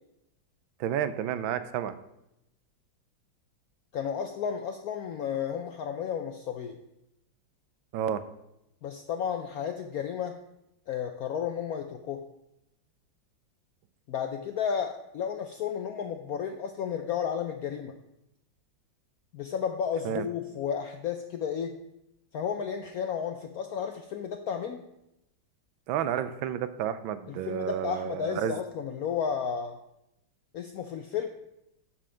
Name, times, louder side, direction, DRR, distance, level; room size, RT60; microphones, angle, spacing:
voice 1, 0.8-1.9 7.9-8.2 20.0-20.3 25.9-28.6, right 9 dB, 85° right, 12 dB, 1.4 m, -31 dB
voice 2, 3.9-6.8 8.8-10.4 10.9-12.3 14.1-17.9 19.3-21.8 22.3-24.8 27.3-29.8 30.5-31.3, left 7 dB, 75° left, 6 dB, 0.8 m, -32 dB
12.0 x 4.4 x 5.0 m, 0.85 s
omnidirectional pair, 2.1 m